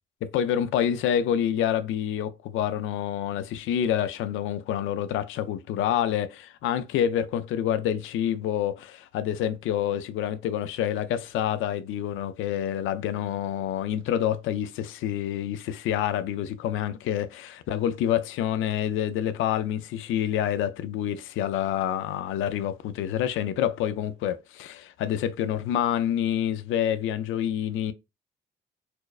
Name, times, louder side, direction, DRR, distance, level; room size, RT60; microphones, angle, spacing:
voice 1, 0.2-27.9, left 10 dB, 80° left, 0.4 m, -27 dB
4.4 x 2.1 x 2.4 m
cardioid pair, 90°, 20 cm